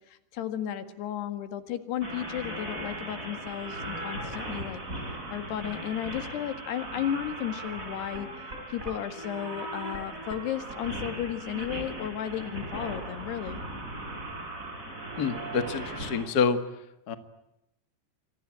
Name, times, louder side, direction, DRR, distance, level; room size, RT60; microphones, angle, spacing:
voice 1, 0.3-4.8 5.3-8.3 8.7-13.6, left 10 dB, 75° left, 10 dB, 3.9 m, -34 dB
sound 1, 2.0-16.3, right 1 dB, 20° right, 5.8 m, -38 dB
voice 2, 15.2-16.6 17.1-17.2, left 5 dB, 55° left, 9 dB, 1.0 m, -27 dB
28.5 x 23.5 x 8.9 m, 0.86 s
omnidirectional pair, 4.8 m